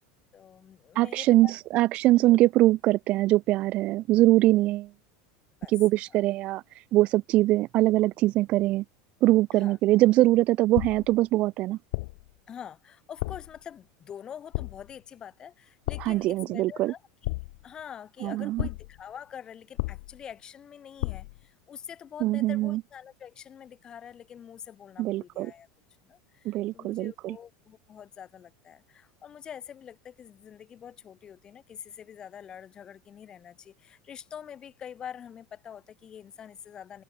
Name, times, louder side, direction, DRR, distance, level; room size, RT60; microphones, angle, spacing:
voice 1, 0.3-1.5 2.1-2.3 5.6-5.7 6.1-6.2 9.5-9.8 12.5-17.3 17.6-25.7 26.0-37.0, left 8 dB, 25° left, 2.7 m, -45 dB
voice 2, 0.9-4.9 5.7-6.6 6.9-8.8 9.2-11.8 16.0-16.9 18.2-18.7 22.2-22.8 25.0-25.5 26.4-27.4, right 17 dB, 45° right, 1.2 m, -23 dB
sound 1, 10.7-11.2 11.9-12.3 13.2-13.6 14.5-15.0 15.9-16.3 17.2-17.8 18.6-19.0 19.8-20.3 21.0-21.4, left 24 dB, 70° left, 0.8 m, -33 dB
supercardioid pair, 145°, 3 cm